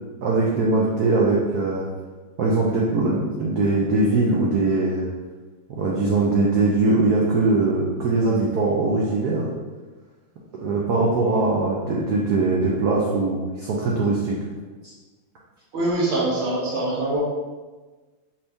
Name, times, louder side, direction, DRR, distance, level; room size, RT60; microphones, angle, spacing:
voice 1, 0.2-1.9 2.4-5.1 5.7-9.5 10.5-14.4 14.8-14.9, right 3 dB, 70° right, -4 dB, 0.9 m, -21 dB
voice 2, 15.7-17.2, right 2 dB, 45° right, -4 dB, 0.9 m, -23 dB
5.5 x 2.8 x 3.5 m, 1.3 s
omnidirectional pair, 2.3 m